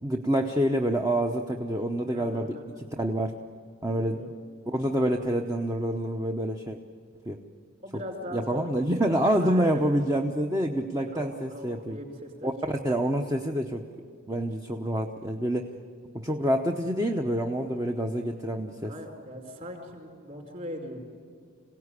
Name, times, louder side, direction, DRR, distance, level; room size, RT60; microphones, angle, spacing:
voice 1, 0.0-3.3 3.8-4.2 4.7-6.8 7.3-7.4 8.3-12.0 12.4-13.8 14.3-15.7 16.1-18.9, right 1 dB, 15° right, 3 dB, 0.9 m, -27 dB
voice 2, 2.1-2.6 3.8-4.3 7.8-9.9 11.1-12.5 18.8-21.0, equal, 35° right, 2 dB, 4.8 m, -40 dB
27.0 x 17.5 x 9.8 m, 2.3 s
head